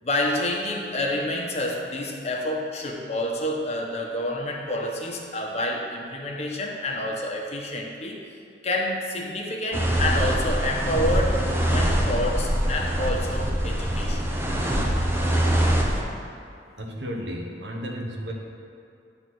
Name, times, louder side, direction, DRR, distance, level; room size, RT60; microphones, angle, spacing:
voice 1, 0.0-8.2 8.6-14.2, left 1 dB, 40° left, -1 dB, 1.1 m, -28 dB
sound 1, 9.7-16.0, equal, 15° right, 0.8 m, -24 dB
voice 2, 16.8-18.3, equal, 85° right, 0 dB, 1.2 m, -33 dB
10.5 x 4.0 x 6.2 m, 2.5 s
head